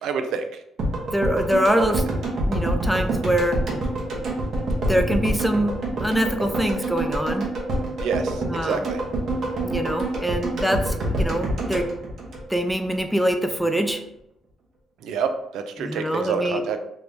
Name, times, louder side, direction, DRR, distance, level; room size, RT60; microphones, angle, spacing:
voice 1, 0.0-0.4 1.8-1.9 8.0-9.0 15.0-16.8, right 6 dB, 85° right, 7 dB, 0.4 m, -28 dB
sound 1, 0.8-13.0 13.3-13.4, right 1 dB, 60° right, 0.9 m, -26 dB
voice 2, 1.1-2.0 2.3-3.6 4.9-7.4 8.5-8.9 9.6-11.9 12.5-14.0 15.8-16.6, equal, ahead, 5 dB, 0.5 m, -24 dB
3.0 x 2.6 x 3.4 m, 0.81 s
cardioid pair, 90°, 0 cm